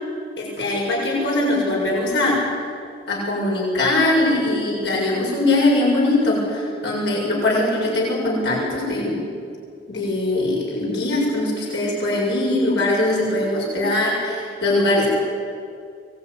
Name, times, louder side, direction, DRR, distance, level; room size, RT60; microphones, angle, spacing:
voice 1, 0.4-2.4 3.1-9.2 9.9-15.1, left 2 dB, 75° left, -3 dB, 7.2 m, -21 dB
24.5 x 20.5 x 9.9 m, 2.4 s
head